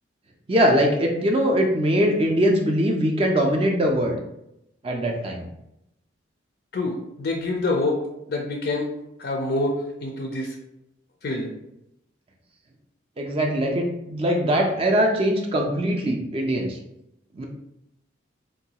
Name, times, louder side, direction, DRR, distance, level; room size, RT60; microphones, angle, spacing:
voice 1, 0.5-4.2 4.8-5.5 13.2-16.8 17.3-17.5, equal, 30° right, 1 dB, 0.3 m, -22 dB
voice 2, 6.7-8.0 8.3-8.9 9.2-10.5 11.2-11.5, left 2 dB, 50° left, 1 dB, 0.4 m, -26 dB
3.7 x 2.2 x 2.8 m, 0.84 s
head